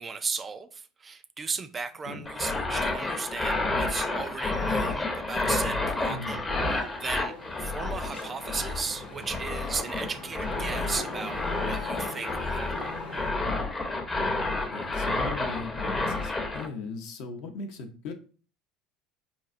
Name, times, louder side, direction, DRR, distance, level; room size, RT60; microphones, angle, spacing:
voice 1, 0.0-13.0, right 5 dB, 30° right, 0.4 m, -36 dB
sound 1, 2.3-16.7, left 2 dB, 25° left, 0.7 m, -30 dB
voice 2, 6.1-6.4 14.5-18.1, left 3 dB, 60° left, 0.6 m, -39 dB
sound 2, 6.6-13.3, left 2 dB, 90° left, 1.0 m, -42 dB
3.9 x 2.6 x 2.4 m
hypercardioid pair, 70°, 0 cm